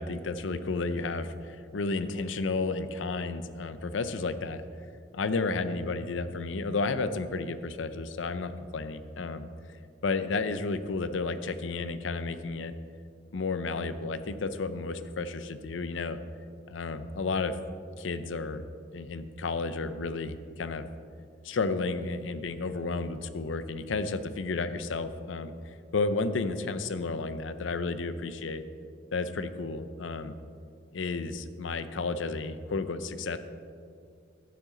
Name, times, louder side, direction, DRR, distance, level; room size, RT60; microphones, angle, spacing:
voice 1, 0.0-4.6 5.1-9.5 10.0-12.7 13.3-16.2 16.7-17.6 18.0-18.6 18.9-20.9 21.4-25.5 25.9-28.6 29.1-30.4 30.9-33.4, left 3 dB, 85° left, 12 dB, 0.6 m, -32 dB
11.5 x 9.1 x 3.8 m, 2.4 s
head